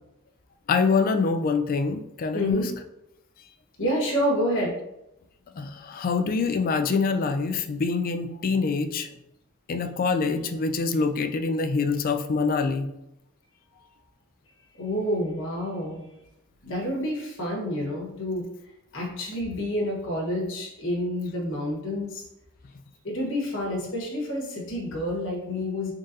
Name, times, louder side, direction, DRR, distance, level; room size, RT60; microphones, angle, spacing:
voice 1, 0.7-2.6 5.6-9.1 9.7-12.9, left 4 dB, 40° left, 7 dB, 0.3 m, -25 dB
voice 2, 2.3-2.7 3.8-4.7 14.8-16.0 16.6-18.5 18.9-22.2 23.0-25.9, left 1 dB, 60° left, -2 dB, 1.2 m, -28 dB
3.9 x 3.6 x 2.6 m, 0.86 s
head